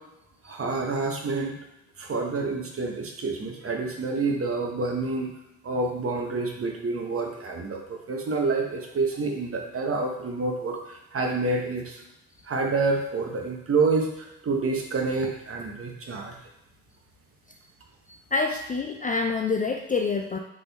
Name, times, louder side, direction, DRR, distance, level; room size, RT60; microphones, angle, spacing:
voice 1, 0.5-1.5 2.0-5.3 5.6-10.8 11.1-12.0 12.5-16.3, right 3 dB, 35° right, 1 dB, 1.1 m, -28 dB
voice 2, 18.3-20.4, left 4 dB, 25° left, 3 dB, 0.4 m, -26 dB
4.0 x 3.8 x 3.5 m, 0.87 s
supercardioid pair, 65°, 37 cm